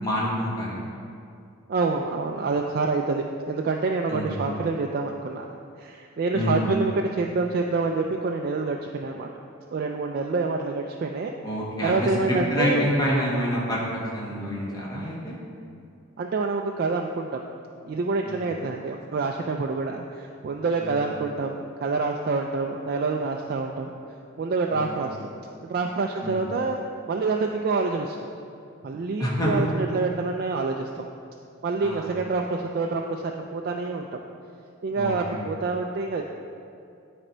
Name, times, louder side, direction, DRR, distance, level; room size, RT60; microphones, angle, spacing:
voice 1, 0.0-0.8 4.1-4.3 6.3-6.6 11.4-15.4 18.2-18.4 20.8-21.0 24.7-25.0 26.2-26.4 29.2-29.5 31.8-32.1 35.0-35.4, equal, 20° left, -5 dB, 1.3 m, -27 dB
voice 2, 1.7-9.3 9.7-11.3 11.8-13.0 16.2-17.4 17.8-23.9 24.4-25.2 25.6-26.8 27.1-28.3 28.8-31.1 31.6-34.1 34.8-36.2, right 3 dB, 45° right, 2 dB, 0.3 m, -27 dB
9.1 x 4.3 x 4.4 m, 2.4 s
head